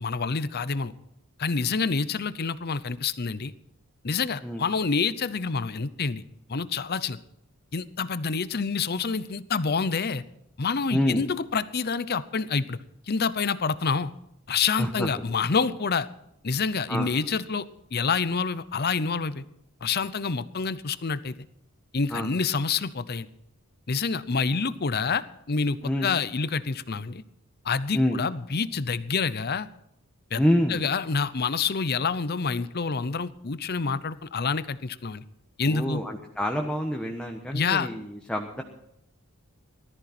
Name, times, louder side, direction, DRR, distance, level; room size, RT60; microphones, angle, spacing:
voice 1, 0.0-0.9 1.4-3.5 4.0-6.2 6.5-7.2 7.7-10.2 10.6-12.8 13.1-14.1 14.5-16.1 16.4-17.7 17.9-19.4 19.8-21.4 21.9-23.3 23.9-27.2 27.6-29.7 30.3-30.4 30.7-35.2 35.6-36.0 37.5-37.9, left 5 dB, 45° left, 15 dB, 0.7 m, -27 dB
voice 2, 10.9-11.2 14.8-15.1 16.9-17.1 22.1-22.3 25.8-26.1 27.9-28.2 30.4-30.8 35.6-38.6, equal, 5° left, 2 dB, 1.2 m, -27 dB
18.5 x 13.5 x 4.3 m, 0.80 s
head